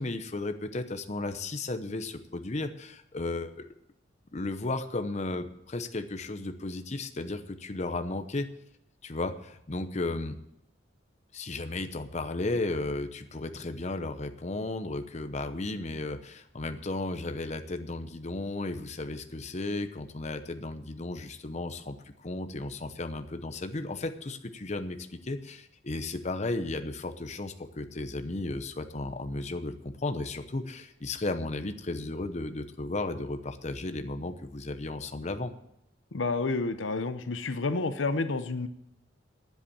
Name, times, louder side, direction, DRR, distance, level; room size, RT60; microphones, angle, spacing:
voice 1, 0.0-3.6 4.3-8.5 9.0-10.4 11.3-35.5, left 2 dB, 40° left, 8 dB, 0.8 m, -34 dB
voice 2, 36.1-38.7, left 3 dB, 90° left, 11 dB, 0.8 m, -29 dB
9.8 x 8.2 x 8.6 m, 0.78 s
head